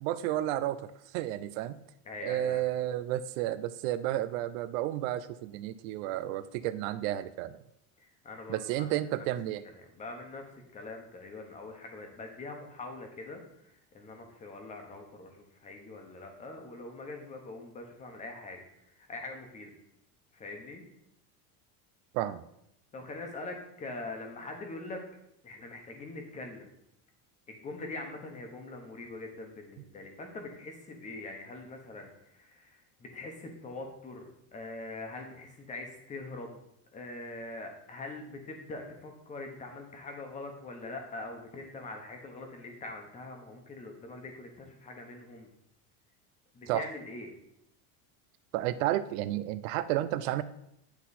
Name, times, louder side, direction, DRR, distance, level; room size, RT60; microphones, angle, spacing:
voice 1, 0.0-1.8 2.2-7.6 8.5-9.6 22.1-22.4 46.7-46.8 48.5-50.4, right 13 dB, 90° right, 14 dB, 0.6 m, -32 dB
voice 2, 2.0-2.6 8.0-8.9 9.2-9.3 9.6-10.4 10.7-19.7 20.3-20.8 22.9-25.0 25.4-26.7 27.5-36.6 36.9-45.5 46.5-47.3, left 2 dB, 20° left, 3 dB, 1.1 m, -43 dB
9.6 x 4.1 x 4.1 m, 0.78 s
cardioid pair, 170°, 39 cm